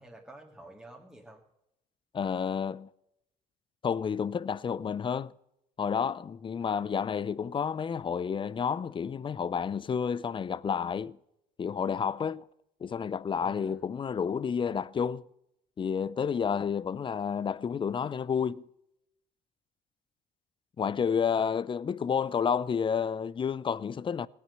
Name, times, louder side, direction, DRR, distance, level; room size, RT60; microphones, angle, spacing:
voice 1, 0.0-1.4 6.6-7.0 13.4-13.9, right 1 dB, 5° right, 2.1 m, -50 dB
voice 2, 2.1-2.9 3.8-5.3 5.8-11.2 11.6-12.5 12.8-15.2 15.8-18.6 20.8-24.3, left 7 dB, 30° left, 0.5 m, -30 dB
17.0 x 9.5 x 6.7 m
supercardioid pair, 95°, 17 cm